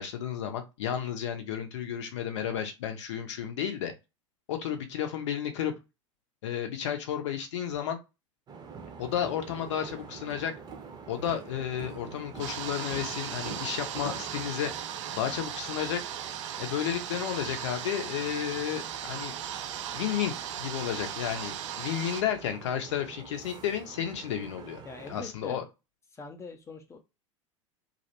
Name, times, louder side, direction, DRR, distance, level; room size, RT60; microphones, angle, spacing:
voice 1, 0.0-3.9 4.5-5.7 6.4-8.0 9.0-10.5 11.1-14.7 15.1-16.0 16.6-19.3 19.9-24.8 25.1-25.6, left 9 dB, 60° left, 0.6 m, -32 dB
sound 1, 8.5-25.2, right 5 dB, 25° right, 0.7 m, -46 dB
sound 2, 12.4-22.2, right 10 dB, 65° right, 0.4 m, -37 dB
voice 2, 24.8-25.6 26.1-27.0, left 4 dB, 15° left, 0.5 m, -43 dB
2.4 x 2.1 x 2.8 m
figure-of-eight pair, 80°, 17 cm